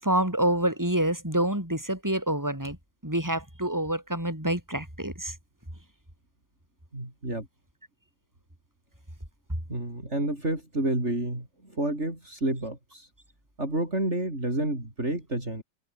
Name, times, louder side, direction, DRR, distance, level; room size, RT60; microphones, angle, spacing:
voice 1, 0.0-2.8 3.0-5.3, right 1 dB, 10° right, 7.4 m, -27 dB
voice 2, 6.9-7.5 9.7-13.1 13.6-15.6, right 1 dB, 40° right, 6.7 m, -30 dB
omnidirectional pair, 1.9 m